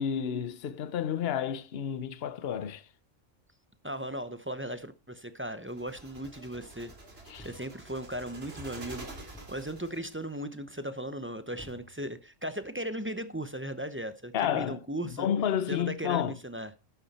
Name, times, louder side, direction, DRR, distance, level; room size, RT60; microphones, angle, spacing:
voice 1, 0.0-2.9 7.3-7.5 14.3-16.4, left 9 dB, 55° left, 1.0 m, -31 dB
voice 2, 3.8-6.9 7.4-9.1 9.5-15.3 15.7-16.7, right 1 dB, 10° right, 0.6 m, -37 dB
sound 1, 5.7-10.2, right 2 dB, 55° right, 2.5 m, -47 dB
Thump thud, 7.4-7.9 9.3-9.8 11.6-12.3, equal, 5° left, 2.5 m, -52 dB
12.0 x 8.7 x 4.2 m
omnidirectional pair, 1.3 m